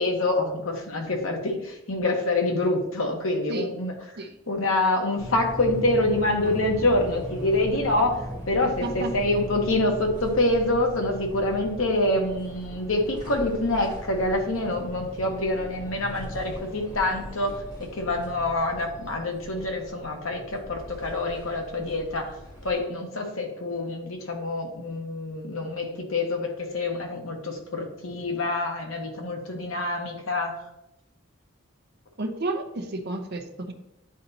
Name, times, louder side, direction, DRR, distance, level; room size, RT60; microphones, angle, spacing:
voice 1, 0.0-3.9 4.5-22.3 22.6-30.6, left 2 dB, 90° left, 3 dB, 1.2 m, -26 dB
sound 1, 5.2-22.8, equal, 20° left, 1.9 m, -39 dB
voice 2, 8.8-9.2 11.9-12.0 32.2-33.7, right 2 dB, 55° right, 4 dB, 0.7 m, -31 dB
10.0 x 4.1 x 2.8 m, 0.88 s
head